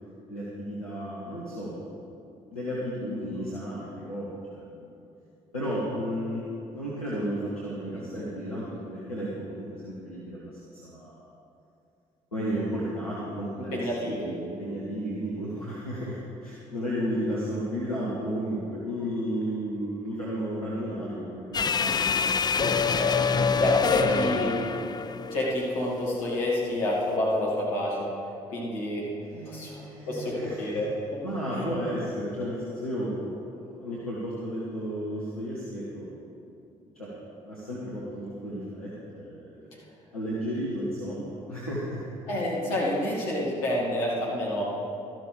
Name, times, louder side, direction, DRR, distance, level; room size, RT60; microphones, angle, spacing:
voice 1, 0.3-5.0 5.5-6.4 6.7-10.5 10.8-11.3 12.3-22.6 22.9-23.0 23.3-23.6 23.9-25.1 29.2-30.7 31.2-36.1 36.4-36.5 36.9-37.1 37.4-39.9 40.1-42.0, equal, 85° left, -8 dB, 1.2 m, -33 dB
voice 2, 7.9-8.3 13.7-14.3 22.5-23.3 23.5-24.6 25.3-28.1 28.5-29.1 29.5-31.2 31.5-31.7 42.3-44.7, left 1 dB, 70° left, -5 dB, 2.3 m, -29 dB
sound 1, 21.5-25.9, left 6 dB, 25° left, 0.4 m, -26 dB
13.0 x 11.5 x 3.4 m, 2.7 s
figure-of-eight pair, 45°, 18 cm